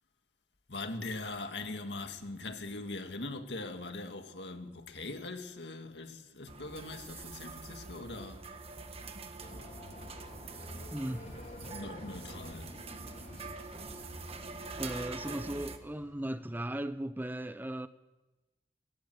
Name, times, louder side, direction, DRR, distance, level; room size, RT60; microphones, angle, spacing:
voice 1, 0.7-8.5 11.7-12.8 13.3-13.5, left 2 dB, 75° left, 2.1 m, -41 dB
sound 1, 6.5-15.8, right 3 dB, 35° right, 1.5 m, -45 dB
sound 2, 9.4-16.5, equal, 45° left, 4.5 m, -49 dB
voice 2, 10.9-11.3 14.8-17.9, right 1 dB, 10° right, 0.6 m, -37 dB
20.0 x 17.0 x 8.0 m
head